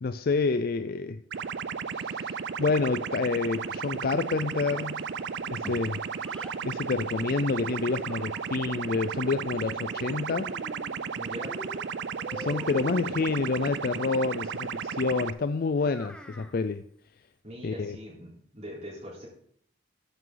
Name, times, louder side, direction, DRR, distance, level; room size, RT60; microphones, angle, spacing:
voice 1, 0.0-1.2 1.9-5.0 5.5-6.0 6.6-10.5 12.3-16.8 17.6-18.0, left 4 dB, 55° left, 0.4 m, -28 dB
sound 1, 1.3-15.3, right 6 dB, 70° right, 0.5 m, -34 dB
Child speech kid speaking, 4.6-6.6 7.5-8.8 9.9-11.1 11.4-13.2 15.7-16.6, equal, 5° left, 1.0 m, -45 dB
voice 2, 11.2-11.5 17.4-18.3 18.5-19.3, equal, 40° right, 3.8 m, -41 dB
13.5 x 9.6 x 3.9 m
head